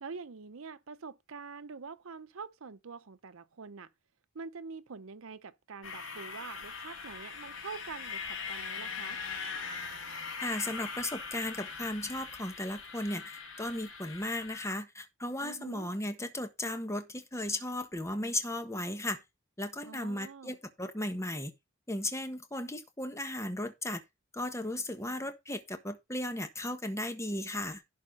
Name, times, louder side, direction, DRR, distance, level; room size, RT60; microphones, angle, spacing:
voice 1, 0.0-3.9 4.3-9.2 15.4-15.9 19.8-20.6, right 5 dB, 80° right, 0.7 m, -45 dB
sound 1, 5.8-14.7, left 5 dB, 75° left, 2.9 m, -41 dB
voice 2, 10.4-19.2 19.6-21.5 21.9-24.0 24.3-27.8, left 1 dB, 15° left, 1.3 m, -36 dB
11.0 x 4.3 x 5.4 m
head